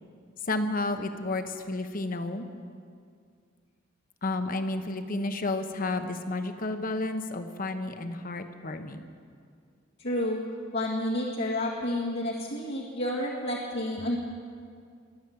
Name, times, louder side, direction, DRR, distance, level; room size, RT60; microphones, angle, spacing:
voice 1, 0.5-2.5 4.2-9.0, left 2 dB, 45° left, 8 dB, 1.0 m, -31 dB
voice 2, 10.0-10.4 10.7-14.2, left 1 dB, 65° left, -5 dB, 1.9 m, -30 dB
22.0 x 7.5 x 8.6 m, 2.2 s
head